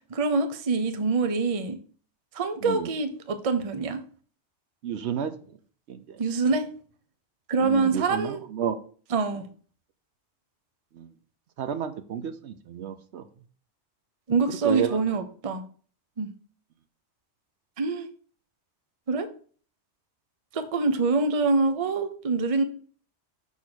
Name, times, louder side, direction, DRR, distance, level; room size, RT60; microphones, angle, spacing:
voice 1, 0.1-1.8 2.3-4.0 6.2-6.7 7.5-8.4 9.1-9.4 14.3-15.6 16.2-16.3 17.8-18.1 19.1-19.3 20.5-22.6, right 4 dB, 35° right, 8 dB, 0.7 m, -25 dB
voice 2, 4.8-5.3 5.9-6.2 7.6-8.8 10.9-11.1 11.6-13.2 14.6-15.2, right 8 dB, 75° right, 10 dB, 0.9 m, -31 dB
6.2 x 3.6 x 6.2 m, 0.44 s
omnidirectional pair, 1.2 m